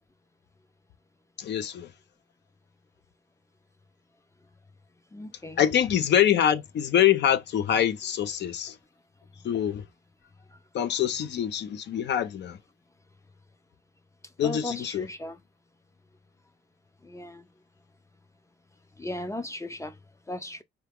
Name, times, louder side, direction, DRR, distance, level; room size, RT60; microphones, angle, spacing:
voice 1, 1.4-1.9 5.6-8.7 9.4-9.8 10.7-12.6 14.4-15.1, left 10 dB, 60° left, 0.6 m, -25 dB
voice 2, 5.1-5.6 14.4-15.4 17.0-17.4 19.0-20.0 20.3-20.6, left 1 dB, 15° left, 0.4 m, -36 dB
4.4 x 2.4 x 3.4 m
cardioid pair, 90°, 20 cm